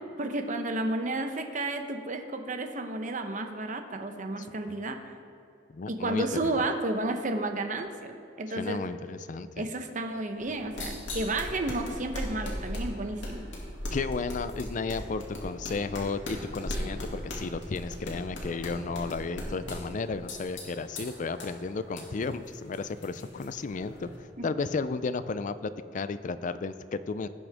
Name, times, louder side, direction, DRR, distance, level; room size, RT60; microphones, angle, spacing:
voice 1, 0.2-5.1 5.9-8.8 9.6-13.4 24.4-24.5, right 2 dB, 45° right, 6 dB, 0.8 m, -32 dB
voice 2, 4.4-4.8 5.7-6.3 8.6-9.7 13.9-24.1 24.4-27.3, left 4 dB, 45° left, 13 dB, 0.4 m, -33 dB
sound 1, 10.4-24.2, left 1 dB, 85° left, 2.3 m, -39 dB
17.0 x 6.2 x 3.5 m, 2.6 s
head